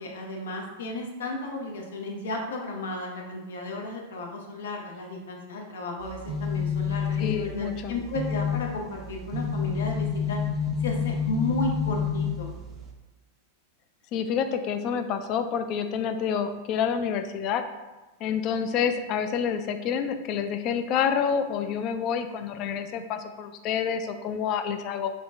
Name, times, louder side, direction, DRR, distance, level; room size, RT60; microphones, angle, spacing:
voice 1, 0.0-10.4 10.8-12.5, left 2 dB, 85° left, 1 dB, 0.7 m, -33 dB
sound 1, 6.0-12.9, left 6 dB, 30° right, 0.4 m, -29 dB
voice 2, 7.2-8.0 14.1-17.6 18.2-25.1, left 7 dB, 45° left, 9 dB, 0.3 m, -28 dB
3.7 x 2.1 x 3.4 m, 1.1 s
hypercardioid pair, 130°, 0 cm